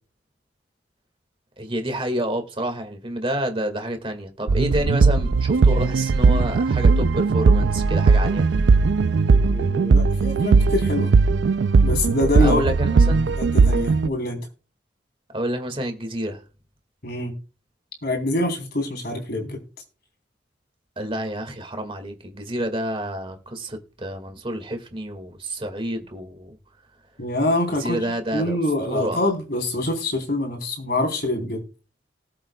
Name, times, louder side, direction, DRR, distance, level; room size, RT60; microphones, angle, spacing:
voice 1, 1.6-8.5 12.4-13.3 15.3-16.4 21.0-26.6 27.8-28.6 28.9-29.2, right 1 dB, 30° right, 1.9 m, -29 dB
sound 1, 4.5-14.1, right 4 dB, 75° right, 0.4 m, -18 dB
voice 2, 9.3-11.1 11.8-12.6 13.4-14.4 17.0-17.3 18.0-19.6 27.2-28.0 28.3-31.6, left 1 dB, 60° left, 3.6 m, -25 dB
19.0 x 7.7 x 2.3 m
head